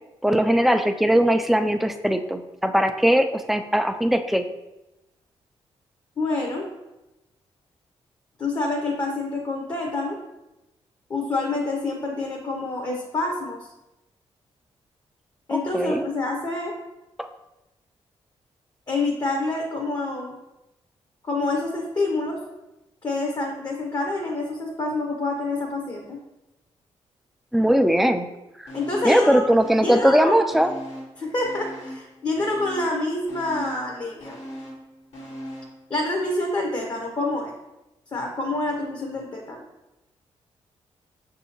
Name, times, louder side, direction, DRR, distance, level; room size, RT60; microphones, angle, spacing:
voice 1, 0.2-4.4 15.5-16.0 17.2-17.3 27.5-28.3 28.6-28.7 29.0-30.7, equal, ahead, 7 dB, 0.4 m, -20 dB
voice 2, 6.2-6.7 8.4-10.2 11.1-13.6 15.5-16.8 18.9-20.4 21.2-22.4 23.0-26.2 28.7-29.5 29.8-30.4 31.2-34.4 35.9-37.5 38.1-39.6, left 2 dB, 35° left, 0 dB, 0.8 m, -27 dB
sound 1, 28.7-29.3 29.6-31.2 31.4-35.8 36.2-36.3, equal, 75° left, 1.4 m, -39 dB
6.1 x 2.7 x 2.8 m, 0.97 s
supercardioid pair, 60°, 11 cm